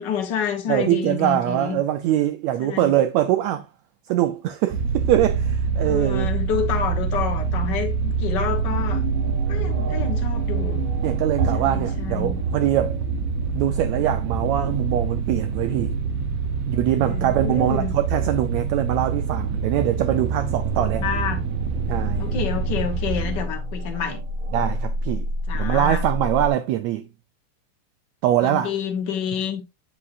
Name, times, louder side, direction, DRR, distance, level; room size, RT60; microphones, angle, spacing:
voice 1, 0.0-1.8 2.6-2.9 5.8-9.0 9.5-10.8 11.6-12.4 17.0-17.9 21.0-21.5 22.2-24.2 25.5-26.1 28.4-29.6, left 7 dB, 90° left, 0.9 m, -28 dB
voice 2, 0.7-3.7 4.1-6.3 11.0-13.0 13.5-15.9 16.7-21.0 21.9-22.3 24.5-25.3 25.5-27.1 28.2-28.7, right 12 dB, 85° right, 1.6 m, -23 dB
sound 1, 4.7-23.4, right 5 dB, 65° right, 1.8 m, -25 dB
sound 2, 7.2-26.5, right 1 dB, 50° right, 1.7 m, -33 dB
9.7 x 5.6 x 2.5 m
omnidirectional pair, 3.8 m